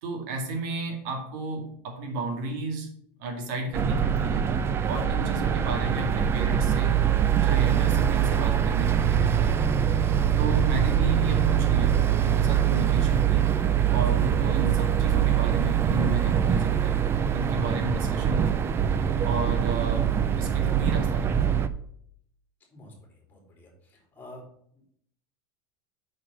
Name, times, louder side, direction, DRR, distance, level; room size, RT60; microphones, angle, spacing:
voice 1, 0.0-2.9 3.2-4.5 4.8-7.0 7.4-9.4 10.4-13.5 13.9-18.6 19.2-21.6, right 2 dB, 65° right, 4 dB, 2.0 m, -33 dB
sound 1, 3.7-21.7, right 9 dB, 20° right, 0.5 m, -23 dB
voice 2, 22.7-24.4 24.7-24.8, left 1 dB, 15° left, 0 dB, 3.4 m, -48 dB
6.4 x 6.0 x 6.3 m, 0.65 s
supercardioid pair, 150°, 11 cm